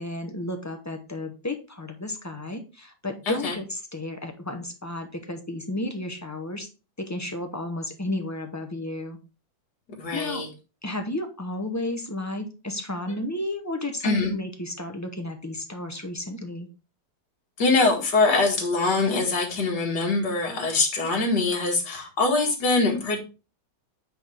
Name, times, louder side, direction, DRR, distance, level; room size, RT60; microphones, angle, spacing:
voice 1, 0.0-6.7 7.0-9.2 10.1-10.5 10.8-16.7, left 1 dB, 20° left, 5 dB, 0.4 m, -32 dB
voice 2, 10.0-10.5 14.0-14.3 17.6-23.2, left 3 dB, 70° left, 1 dB, 2.3 m, -23 dB
9.1 x 4.3 x 3.4 m, 0.32 s
omnidirectional pair, 1.9 m